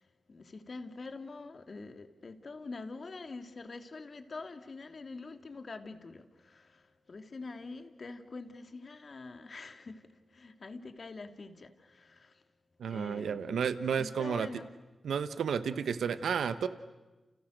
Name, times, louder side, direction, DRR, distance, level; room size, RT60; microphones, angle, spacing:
voice 1, 0.0-12.4 12.9-14.7, left 3 dB, 60° left, 2.7 m, -45 dB
voice 2, 12.8-14.5 15.0-16.7, right 7 dB, 90° right, 1.0 m, -32 dB
30.0 x 30.0 x 6.7 m
cardioid pair, 40°, 0 cm